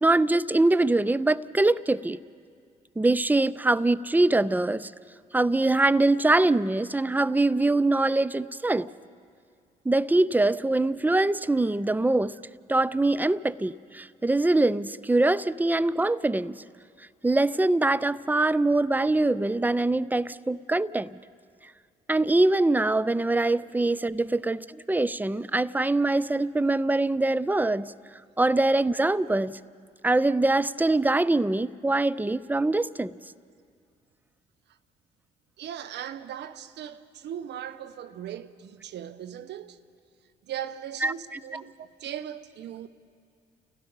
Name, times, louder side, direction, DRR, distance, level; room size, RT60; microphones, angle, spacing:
voice 1, 0.0-2.2 3.0-4.9 5.3-8.9 9.9-12.4 12.7-16.6 17.2-21.2 22.1-27.9 28.4-29.6 30.0-33.2 41.0-41.1, right 2 dB, 10° right, 0.5 m, -23 dB
voice 2, 35.6-39.8 40.4-42.9, right 10 dB, 55° right, 0.9 m, -38 dB
29.5 x 16.5 x 5.4 m
figure-of-eight pair, 45°, 21 cm